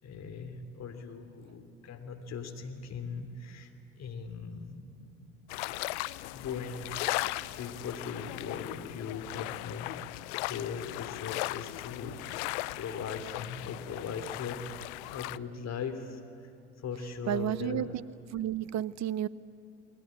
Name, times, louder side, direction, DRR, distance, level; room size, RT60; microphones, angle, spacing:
voice 1, 0.0-3.7 4.0-5.2 6.3-7.3 7.5-12.5 12.8-14.8 15.1-16.5 16.8-17.8, left 5 dB, 45° left, 7 dB, 3.2 m, -40 dB
sound 1, 5.5-15.4, left 20 dB, 70° left, 0.7 m, -37 dB
voice 2, 17.3-18.0 18.3-19.3, right 11 dB, 50° right, 18 dB, 0.9 m, -31 dB
29.0 x 20.5 x 8.6 m, 2.6 s
hypercardioid pair, 60°, 36 cm